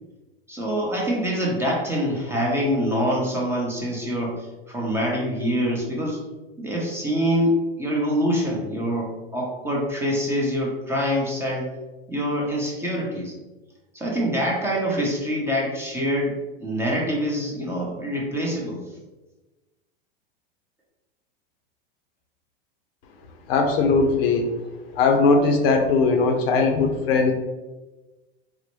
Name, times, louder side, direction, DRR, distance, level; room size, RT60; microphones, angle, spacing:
voice 1, 0.5-6.2 6.6-11.7 12.1-13.3 13.9-18.8, equal, 10° right, -3 dB, 0.7 m, -25 dB
voice 2, 23.5-24.5 24.9-27.3, left 4 dB, 65° left, 4 dB, 0.7 m, -19 dB
4.0 x 2.1 x 3.0 m, 1.1 s
hypercardioid pair, 115°, 31 cm